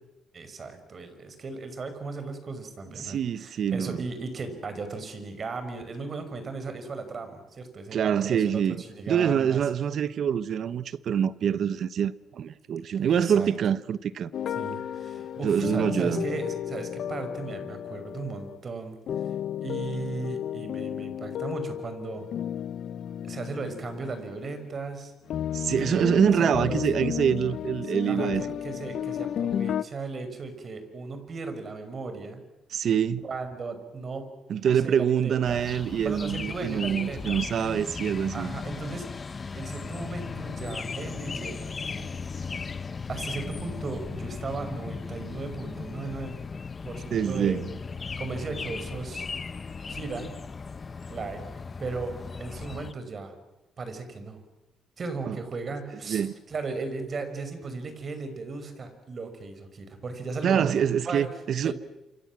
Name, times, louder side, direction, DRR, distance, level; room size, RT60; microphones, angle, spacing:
voice 1, 0.3-9.6 13.0-13.5 14.6-22.2 23.2-25.1 25.8-26.1 26.4-26.8 28.0-32.4 33.2-34.3 34.6-35.6 36.0-37.4 38.3-39.1 39.5-42.1 43.1-46.3 46.8-47.5 48.2-49.3 49.6-50.3 51.1-52.1 52.4-53.3 53.8-54.4 55.0-61.3 61.6-61.7, right 4 dB, 45° right, 5.7 m, -36 dB
voice 2, 3.0-4.0 7.9-8.8 9.1-14.3 15.4-16.2 25.5-28.4 32.7-33.2 34.5-38.6 47.1-47.7 55.3-55.4 56.1-56.3 60.4-61.7, right 8 dB, 65° right, 1.1 m, -25 dB
sound 1, 14.3-18.6 19.1-24.7 25.3-29.8, left 9 dB, 65° left, 0.9 m, -33 dB
sound 2, 35.4-52.9, left 5 dB, 35° left, 1.1 m, -37 dB
28.0 x 27.0 x 7.6 m
cardioid pair, 90°, 0 cm